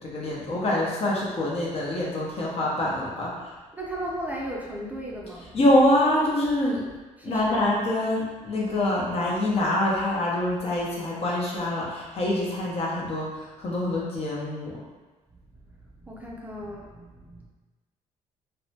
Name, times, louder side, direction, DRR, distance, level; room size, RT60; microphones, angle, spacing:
voice 1, 0.0-3.5 5.5-6.9 7.2-14.7, left 1 dB, 45° left, -4 dB, 0.8 m, -25 dB
voice 2, 3.7-5.6 7.2-7.7 15.9-17.5, right 1 dB, 10° right, -4 dB, 0.4 m, -36 dB
2.7 x 2.1 x 2.8 m, 1.3 s
cardioid pair, 85°, 14 cm